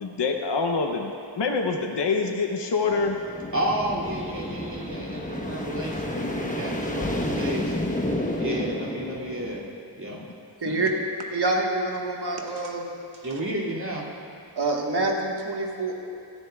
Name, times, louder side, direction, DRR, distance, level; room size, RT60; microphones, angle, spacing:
voice 1, 0.0-3.2 8.1-8.7 10.1-10.3 10.7-10.8, left 4 dB, 70° left, 3 dB, 0.8 m, -27 dB
sound 1, 2.9-9.6, left 1 dB, 15° left, 1.1 m, -30 dB
voice 2, 3.5-7.7 8.4-9.6 10.0-10.2 13.2-14.1, right 1 dB, 40° right, -6 dB, 2.6 m, -31 dB
voice 3, 10.6-10.9 11.3-12.9 14.6-16.0, right 2 dB, 60° right, 0 dB, 1.5 m, -26 dB
17.0 x 13.0 x 2.4 m, 2.5 s
wide cardioid pair, 55°, 45 cm